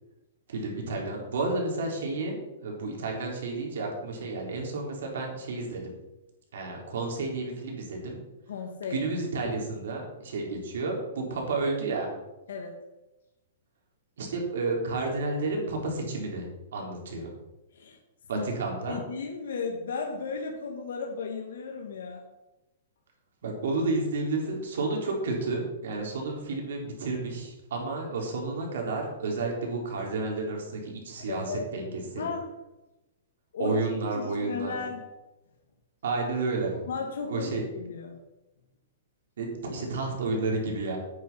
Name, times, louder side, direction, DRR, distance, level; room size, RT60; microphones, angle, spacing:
voice 1, 0.5-2.3 2.6-6.0 6.5-8.2 8.9-12.1 14.2-16.5 16.7-17.3 18.3-19.0 23.4-32.3 33.6-34.8 36.0-36.9 37.3-37.7 39.4-41.0, right 3 dB, 70° right, 0 dB, 3.8 m, -31 dB
voice 2, 8.5-9.0 12.5-12.8 17.7-18.0 18.3-18.5 18.9-22.2 31.3-31.6 32.2-32.5 33.5-33.8 34.1-35.0 36.8-38.2, left 5 dB, 75° left, 1 dB, 1.6 m, -35 dB
9.0 x 8.4 x 5.6 m, 1.0 s
hypercardioid pair, 170°, 0 cm